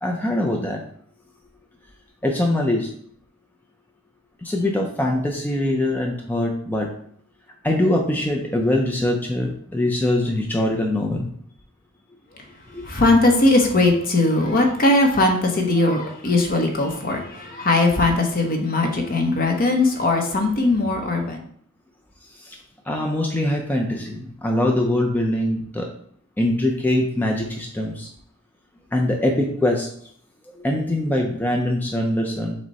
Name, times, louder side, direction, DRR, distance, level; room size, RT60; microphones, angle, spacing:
voice 1, 0.0-0.8 2.2-2.9 4.4-6.9 7.6-11.2 12.7-12.8 22.4-22.6 22.9-25.9 26.4-28.1 28.9-29.9 30.6-32.5, left 1 dB, 10° left, 0 dB, 0.4 m, -23 dB
voice 2, 12.8-21.4, left 2 dB, 45° left, 3 dB, 0.7 m, -19 dB
6.1 x 2.1 x 4.1 m, 0.63 s
head